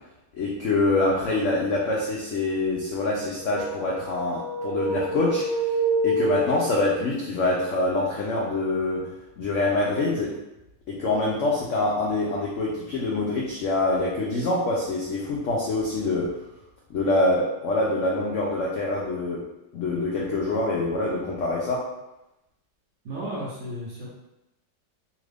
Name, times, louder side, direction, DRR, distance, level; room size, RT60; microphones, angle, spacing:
voice 1, 0.3-5.4 6.0-9.0 9.4-10.3 10.9-16.3 16.9-19.4 19.7-21.8, left 2 dB, 85° left, -4 dB, 0.6 m, -25 dB
sound 1, 3.4-7.0, right 1 dB, 25° left, 0.4 m, -27 dB
voice 2, 23.0-24.1, right 1 dB, 55° right, -6 dB, 0.9 m, -33 dB
3.0 x 2.5 x 3.3 m, 0.92 s
omnidirectional pair, 1.9 m